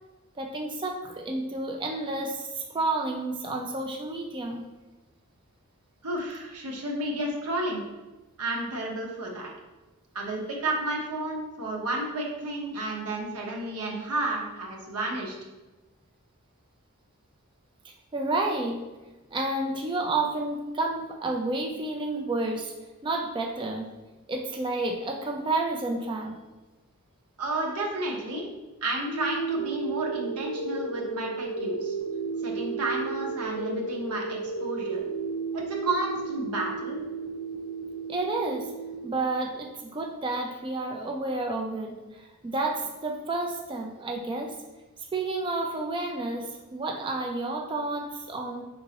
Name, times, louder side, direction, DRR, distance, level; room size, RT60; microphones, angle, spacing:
voice 1, 0.4-4.6 18.1-18.8 19.3-22.7 23.0-23.9 24.3-26.4 38.1-38.7 39.0-44.6 45.0-48.6, right 2 dB, 20° right, 1 dB, 0.3 m, -30 dB
voice 2, 6.0-7.8 8.4-9.5 10.1-15.4 27.4-28.4 28.8-31.9 32.4-35.1 35.5-37.0, right 2 dB, 90° right, -1 dB, 1.0 m, -31 dB
sound 1, 29.1-39.1, right 4 dB, 80° left, 0.5 m, -33 dB
4.8 x 3.8 x 2.8 m, 1.1 s
head